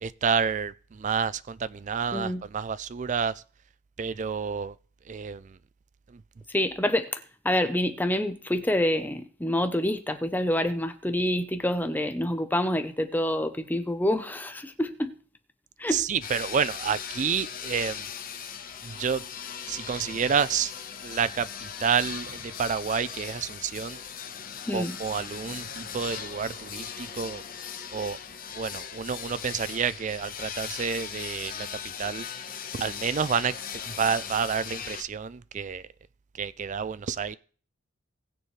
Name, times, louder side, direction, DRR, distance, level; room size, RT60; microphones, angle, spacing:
voice 1, 0.0-3.3 4.0-4.8 5.1-5.6 6.1-6.2 15.9-18.1 18.8-19.2 19.7-20.7 21.0-24.0 24.7-27.4 27.9-28.2 28.5-31.7 32.0-32.3 32.7-33.5 33.8-35.8 36.4-37.4, right 6 dB, 35° right, 0.4 m, -29 dB
voice 2, 2.1-2.4 6.5-15.1 15.8-16.0 24.7-25.0, left 1 dB, 10° left, 0.7 m, -27 dB
sound 1, 16.2-35.0, left 8 dB, 45° left, 1.0 m, -39 dB
19.0 x 6.9 x 3.2 m
head